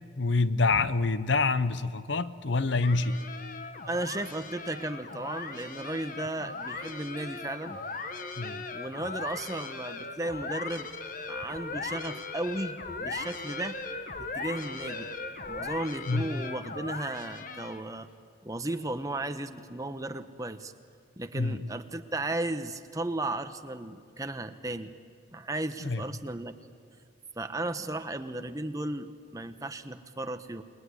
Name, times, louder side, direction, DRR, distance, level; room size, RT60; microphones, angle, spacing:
voice 1, 0.2-3.2 8.4-8.6 16.1-16.3 21.3-21.6 25.8-26.0, left 3 dB, 75° left, 14 dB, 0.8 m, -26 dB
sound 1, 2.8-18.0, left 3 dB, 45° left, 1.2 m, -38 dB
voice 2, 3.9-7.8 8.7-10.9 11.3-13.8 14.3-15.1 15.5-18.1 18.4-20.7 21.2-24.9 25.3-26.5 27.4-30.6, right 2 dB, 20° right, 8 dB, 1.0 m, -35 dB
29.0 x 20.5 x 9.7 m, 2.2 s
head